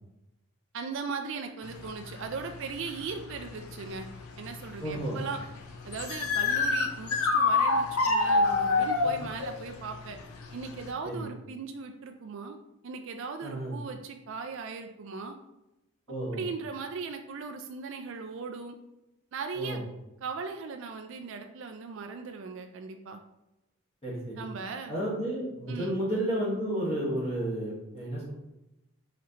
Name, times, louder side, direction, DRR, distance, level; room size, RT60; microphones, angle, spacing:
voice 1, 0.7-4.1 4.4-5.4 5.9-10.2 10.5-12.6 12.8-15.4 16.3-18.8 19.3-19.8 20.2-23.2 24.4-25.0 25.7-26.0, right 5 dB, 60° right, 5 dB, 0.3 m, -38 dB
sound 1, 1.6-10.9, left 3 dB, 80° left, 0.6 m, -28 dB
voice 2, 4.8-5.2 9.0-9.2 11.0-11.3 13.4-13.7 16.1-16.5 19.5-19.8 24.0-24.4 24.9-28.3, right 1 dB, 25° left, -7 dB, 1.3 m, -32 dB
4.2 x 3.9 x 2.8 m, 0.92 s
head